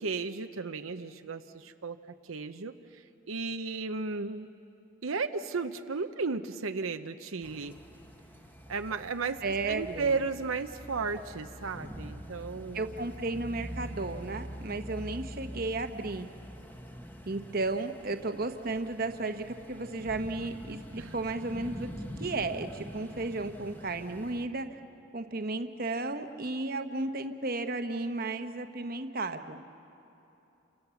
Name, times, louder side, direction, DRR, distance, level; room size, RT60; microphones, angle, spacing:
voice 1, 0.0-2.0 2.2-4.5 5.0-7.8 8.7-9.4 9.7-12.9 21.0-21.1, right 4 dB, 85° right, 7 dB, 0.8 m, -34 dB
sound 1, 7.4-24.5, equal, 10° left, 1.2 m, -45 dB
voice 2, 9.4-10.2 12.7-16.3 17.3-21.9 22.2-24.7 25.1-29.6, right 2 dB, 45° right, 7 dB, 1.1 m, -34 dB
29.5 x 26.0 x 7.1 m, 3.0 s
head